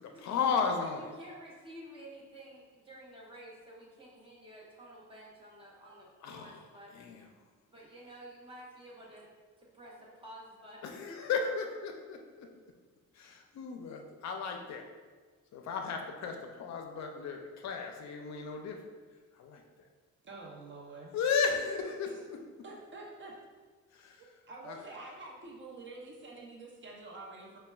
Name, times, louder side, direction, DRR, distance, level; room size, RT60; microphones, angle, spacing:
voice 1, 0.0-1.1 6.2-6.6 6.9-7.2 10.8-12.5 13.1-14.9 15.5-18.8 19.4-19.6 21.1-22.1 23.9-24.2 24.6-24.8, left 5 dB, 65° left, 3 dB, 0.5 m, -34 dB
voice 2, 0.8-6.9 7.7-9.3 9.6-10.9, right 1 dB, 15° right, -5 dB, 1.0 m, -51 dB
voice 3, 20.2-21.2 22.0-22.2 22.6-23.4 24.2-27.6, right 2 dB, 40° right, -2 dB, 0.7 m, -47 dB
5.2 x 2.2 x 2.3 m, 1.5 s
cardioid pair, 90°, 30 cm